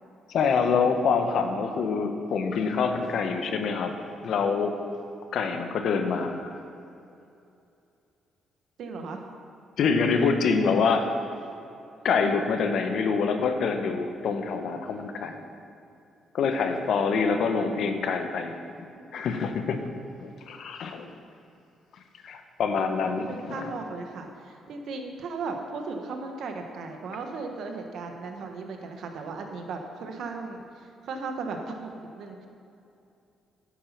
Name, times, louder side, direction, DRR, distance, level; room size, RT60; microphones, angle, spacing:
voice 1, 0.3-3.9 4.2-4.7 5.3-6.5 9.8-11.1 12.0-15.3 16.3-18.5 19.1-19.8 20.2-21.1 22.2-23.7, left 5 dB, 70° left, 6 dB, 1.0 m, -26 dB
voice 2, 8.8-9.3 23.3-30.6 31.0-32.5, right 4 dB, 70° right, 4 dB, 1.2 m, -36 dB
10.0 x 8.3 x 5.9 m, 2.6 s
cardioid pair, 90°, 0 cm